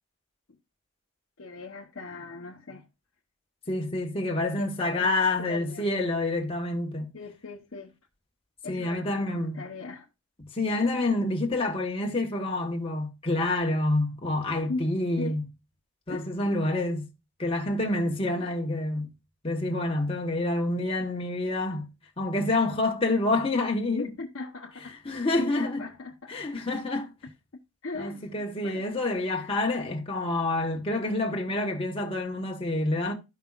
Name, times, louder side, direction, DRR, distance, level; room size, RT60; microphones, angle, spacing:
voice 1, 1.4-2.8 4.6-5.1 5.4-5.9 7.1-7.9 8.6-10.1 14.7-14.8 15.2-15.4 16.1-16.3 24.0-25.0 25.2-26.4 27.8-28.8 29.3-29.5, left 3 dB, 65° left, 1.0 m, -39 dB
voice 2, 3.7-7.1 8.7-9.6 10.5-15.4 16.1-17.1 17.4-19.1 19.4-21.9 22.2-24.1 25.0-25.8 26.3-27.1 28.0-33.1, left 2 dB, 25° left, 1.4 m, -28 dB
13.0 x 5.4 x 2.4 m
head